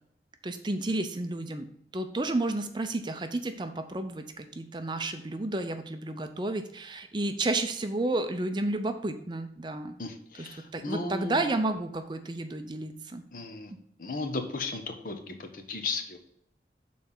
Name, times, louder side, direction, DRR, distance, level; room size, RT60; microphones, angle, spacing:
voice 1, 0.4-1.7 1.9-10.0 10.4-13.2, right 2 dB, 25° right, 7 dB, 0.5 m, -31 dB
voice 2, 10.0-11.5 13.3-13.7 14.0-16.2, left 3 dB, 50° left, 5 dB, 1.0 m, -35 dB
6.9 x 4.2 x 5.4 m, 0.70 s
head